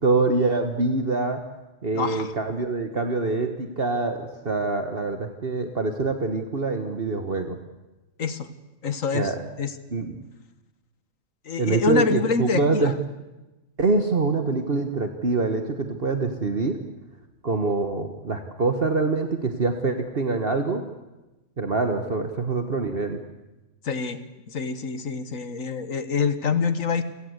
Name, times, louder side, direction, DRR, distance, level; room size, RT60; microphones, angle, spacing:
voice 1, 0.0-1.4 1.8-7.6 9.1-9.4 9.9-10.1 11.6-13.0 13.8-16.8 17.4-20.8 21.6-23.2, right 3 dB, 45° right, 6 dB, 1.7 m, -25 dB
voice 2, 1.9-2.3 8.2-8.5 8.8-9.3 9.6-9.7 11.5-12.9 23.8-24.2 24.5-27.0, left 5 dB, 85° left, 11 dB, 1.9 m, -26 dB
29.0 x 17.5 x 8.1 m, 1.0 s
omnidirectional pair, 1.4 m